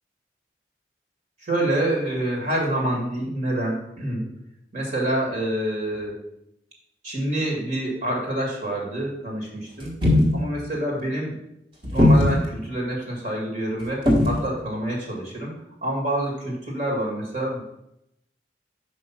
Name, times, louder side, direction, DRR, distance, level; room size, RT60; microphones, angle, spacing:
voice 1, 1.4-4.3 4.7-6.2 7.0-9.9 10.3-11.3 11.9-15.5 15.8-17.6, right 1 dB, 45° right, -2 dB, 2.1 m, -27 dB
sound 1, 9.8-10.4 11.8-12.5 14.1-14.4, left 1 dB, 30° right, 1.5 m, -18 dB
5.4 x 5.3 x 5.7 m, 0.81 s
head